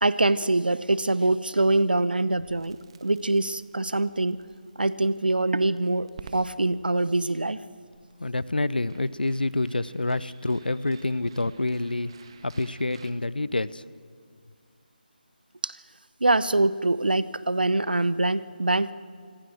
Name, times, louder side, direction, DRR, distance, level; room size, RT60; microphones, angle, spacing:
voice 1, 0.0-4.4 4.8-7.6 15.6-15.8 16.2-18.9, right 2 dB, 65° right, 16 dB, 1.0 m, -24 dB
Crackle, 2.3-13.1, right 5 dB, 35° right, 1.6 m, -53 dB
voice 2, 8.2-12.1 12.4-13.8, left 2 dB, 70° left, 19 dB, 0.9 m, -27 dB
26.0 x 25.0 x 6.4 m, 2.1 s
figure-of-eight pair, 155°, 5 cm